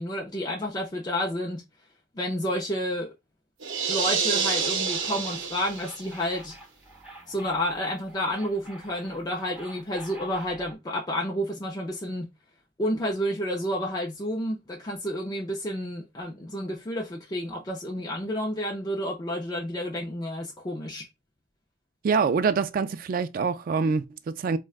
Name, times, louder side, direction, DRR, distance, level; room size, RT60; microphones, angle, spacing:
voice 1, 0.0-1.6 2.2-3.1 3.9-6.6 7.3-12.3 12.8-21.1, equal, 20° left, 0.4 m, -30 dB
sound 1, 3.6-6.1, right 6 dB, 90° right, 0.7 m, -28 dB
sound 2, 3.9-10.7, right 1 dB, 5° right, 1.0 m, -47 dB
voice 2, 22.0-24.6, right 5 dB, 45° right, 0.3 m, -25 dB
4.7 x 2.2 x 2.3 m
head